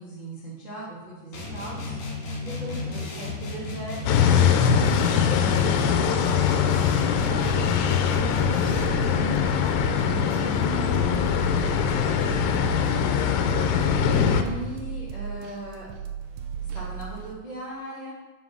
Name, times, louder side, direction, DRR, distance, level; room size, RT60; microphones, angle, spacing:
voice 1, 0.0-1.9 2.4-7.7 8.1-8.6 10.3-10.4 12.0-13.3 14.2-15.9 16.7-18.1, right 1 dB, 25° right, -8 dB, 1.0 m, -39 dB
sound 1, 1.3-9.1, left 2 dB, 55° left, 2.6 m, -34 dB
voice 2, 2.7-3.3 8.5-8.8 9.2-9.9 10.1-12.7, right 1 dB, 55° right, -1 dB, 2.3 m, -38 dB
sound 2, 4.1-14.4, left 8 dB, 85° left, 2.7 m, -22 dB
sound 3, 7.1-17.3, right 7 dB, 85° right, 2.8 m, -36 dB
7.3 x 6.1 x 5.9 m, 1.2 s
omnidirectional pair, 4.8 m